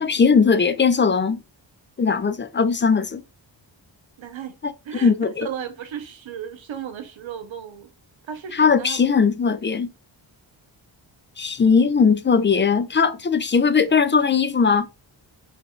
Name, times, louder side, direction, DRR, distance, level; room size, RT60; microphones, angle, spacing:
voice 1, 0.0-1.4 2.0-3.2 5.0-5.5 8.5-9.9 11.4-14.9, left 5 dB, 25° left, 0.3 m, -19 dB
voice 2, 4.2-4.6 4.8-5.1 5.4-7.9 8.3-9.0, right 8 dB, 85° right, 0.9 m, -35 dB
4.9 x 3.4 x 2.3 m
wide cardioid pair, 90°, 46 cm